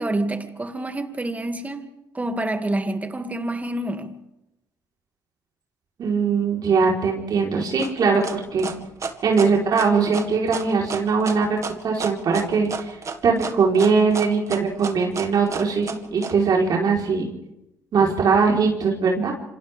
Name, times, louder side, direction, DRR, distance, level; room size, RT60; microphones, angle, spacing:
voice 1, 0.0-1.9 2.1-4.2, right 1 dB, 20° right, 2.5 m, -27 dB
voice 2, 6.0-8.7 9.2-11.6 11.8-13.0 13.2-17.3 17.9-19.3, right 5 dB, 55° right, 4.3 m, -21 dB
sound 1, 7.8-16.3, right 5 dB, 40° right, 2.1 m, -32 dB
27.5 x 26.0 x 3.6 m
supercardioid pair, 70°, 8 cm